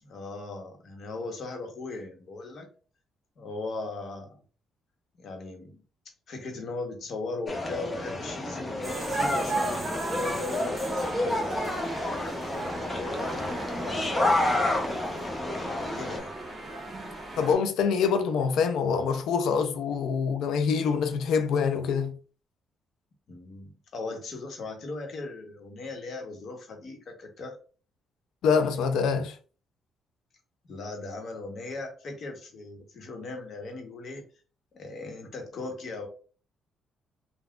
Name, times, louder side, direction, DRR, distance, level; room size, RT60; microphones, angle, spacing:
voice 1, 0.0-2.7 3.4-4.3 5.2-5.8 6.3-14.9 15.9-16.3 23.3-27.6 30.6-34.2 34.7-36.1, left 3 dB, 60° left, 1.0 m, -38 dB
sound 1, 7.5-16.2, left 2 dB, 25° left, 0.7 m, -30 dB
sound 2, 8.8-17.6, right 2 dB, 25° right, 1.3 m, -35 dB
voice 2, 17.4-22.2 28.4-29.4, left 6 dB, 80° left, 0.4 m, -25 dB
3.6 x 2.2 x 2.3 m
cardioid pair, 90°, 0 cm